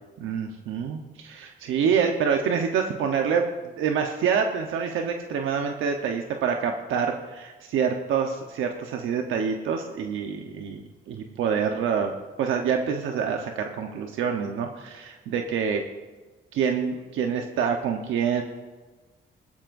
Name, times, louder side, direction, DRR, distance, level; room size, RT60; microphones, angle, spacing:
voice 1, 0.2-3.4 3.8-12.1 12.4-15.8 16.5-18.4, right 6 dB, 85° right, 3 dB, 1.0 m, -26 dB
20.0 x 13.0 x 2.6 m, 1.3 s
cardioid pair, 90°, 20 cm